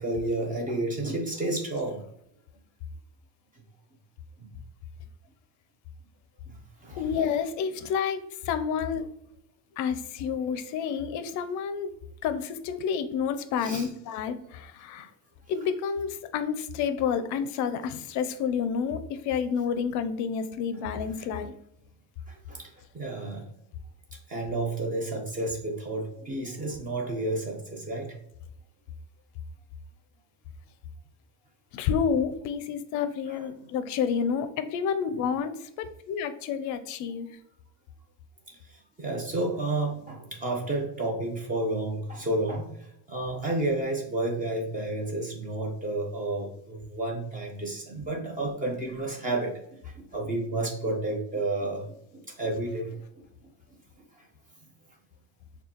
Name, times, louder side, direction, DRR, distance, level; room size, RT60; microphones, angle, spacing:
voice 1, 0.0-2.0 6.8-7.0 13.6-13.9 22.5-22.7 22.9-23.4 24.3-28.1 33.3-33.4 39.0-42.7 43.1-49.5 50.0-51.8 52.4-53.0, right 2 dB, 20° right, 0 dB, 0.7 m, -30 dB
voice 2, 7.0-9.0 9.8-11.9 12.2-15.1 15.5-21.5 31.7-37.3, left 7 dB, 50° left, 11 dB, 0.5 m, -29 dB
6.2 x 2.3 x 2.9 m, 0.75 s
cardioid pair, 145°, 38 cm